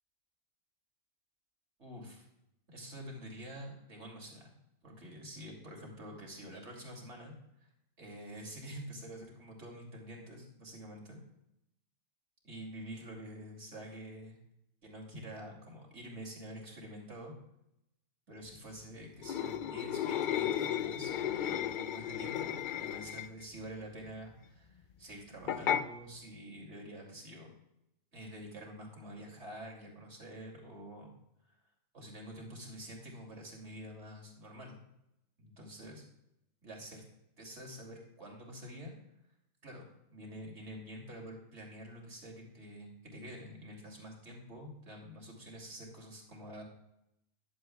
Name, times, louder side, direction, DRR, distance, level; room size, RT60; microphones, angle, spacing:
voice 1, 1.8-2.3 2.7-4.5 4.8-7.3 7.6-7.7 8.0-11.2 12.4-14.4 14.8-17.3 18.3-27.5 28.1-31.1 31.4-31.6 31.9-34.8 35.4-36.0 36.6-37.0 37.4-38.9 39.6-46.6, equal, 55° right, 0 dB, 3.0 m, -47 dB
sound 1, 19.2-23.4 25.5-25.9, left 9 dB, 70° left, 0.4 m, -34 dB
15.0 x 11.0 x 2.3 m, 0.83 s
omnidirectional pair, 1.4 m